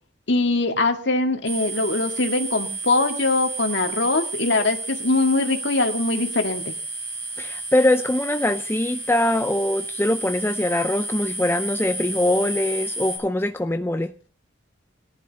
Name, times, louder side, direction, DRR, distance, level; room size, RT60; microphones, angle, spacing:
voice 1, 0.3-6.7, left 2 dB, 60° left, 5 dB, 2.0 m, -22 dB
sound 1, 1.5-13.2, right 2 dB, 55° right, 7.5 m, -32 dB
voice 2, 7.4-14.1, left 1 dB, 10° left, 8 dB, 0.5 m, -22 dB
18.0 x 11.0 x 4.1 m, 0.39 s
head